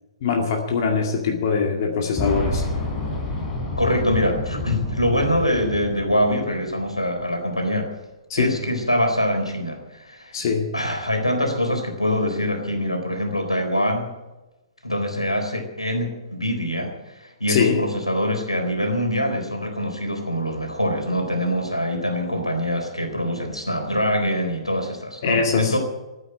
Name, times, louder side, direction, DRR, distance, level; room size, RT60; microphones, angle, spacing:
voice 1, 0.2-2.6 8.3-8.5 10.3-10.7 17.5-17.8 25.2-25.8, left 5 dB, 40° left, 2 dB, 2.2 m, -22 dB
Boom, 2.2-6.9 7.2-7.3 8.4-8.5, left 2 dB, 15° left, 4.3 m, -29 dB
voice 2, 3.8-7.9 8.4-10.3 10.7-14.1 14.8-25.8, left 1 dB, 85° left, 4 dB, 4.1 m, -24 dB
15.0 x 9.0 x 9.6 m, 1.1 s
figure-of-eight pair, 120°, 3 cm